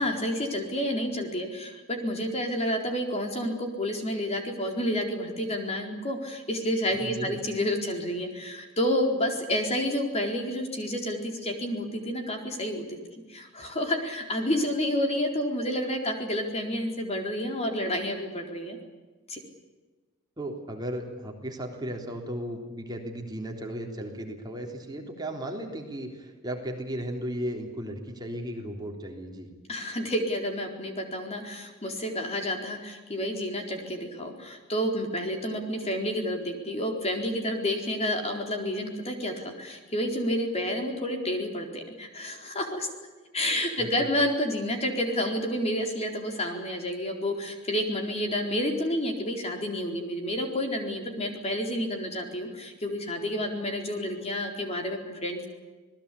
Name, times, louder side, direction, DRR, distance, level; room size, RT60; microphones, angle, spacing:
voice 1, 0.0-13.0 13.3-18.8 19.3-19.4 29.7-42.9 43.3-55.5, equal, 30° left, 3 dB, 4.2 m, -30 dB
voice 2, 7.0-7.4 20.4-29.5 43.8-44.1, equal, 20° right, 2 dB, 3.6 m, -35 dB
27.5 x 20.0 x 8.5 m, 1.3 s
head